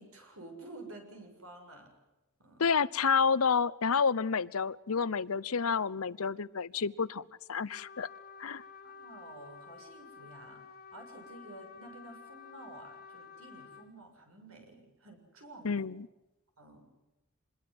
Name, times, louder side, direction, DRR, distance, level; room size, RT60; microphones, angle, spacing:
voice 1, 0.0-1.9 2.4-2.6 8.8-10.6 10.9-15.9 16.6-16.8, right 2 dB, 80° right, 4 dB, 7.1 m, -51 dB
voice 2, 2.6-7.2 7.5-8.1 8.4-8.6 15.6-16.1, left 5 dB, 80° left, 19 dB, 0.8 m, -29 dB
Trumpet, 7.7-13.9, left 5 dB, 50° left, 2.8 m, -51 dB
26.0 x 21.5 x 7.8 m, 1.0 s
head